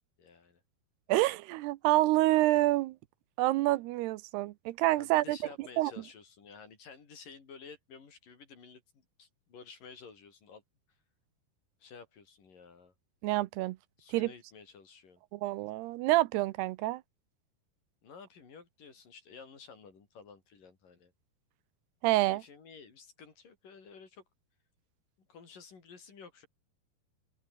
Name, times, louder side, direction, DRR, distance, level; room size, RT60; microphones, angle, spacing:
voice 1, 0.2-0.6 5.0-10.6 11.8-12.9 14.0-15.2 18.0-21.1 22.2-24.2 25.3-26.5, left 5 dB, 55° left, 5.9 m, -52 dB
voice 2, 1.1-3.0 3.4-5.9 13.2-13.8 14.1-14.3 15.3-17.0 22.0-22.4, right 18 dB, 80° right, 2.7 m, -27 dB
omnidirectional pair, 4.7 m